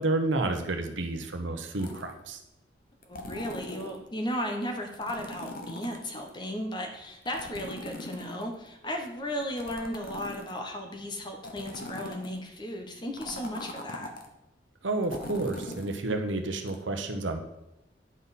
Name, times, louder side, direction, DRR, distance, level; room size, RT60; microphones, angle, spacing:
voice 1, 0.0-2.4 14.8-17.4, right 2 dB, 90° right, 5 dB, 1.0 m, -30 dB
sound 1, 1.8-2.2 3.0-4.0 4.9-6.3 7.3-8.7 9.4-10.7 11.4-12.4 13.2-14.3 15.0-16.0 16.7-16.8, left 1 dB, 50° left, 1.0 m, -41 dB
voice 2, 3.1-14.1, equal, 25° left, 3 dB, 1.0 m, -35 dB
9.8 x 5.5 x 4.2 m, 0.90 s
head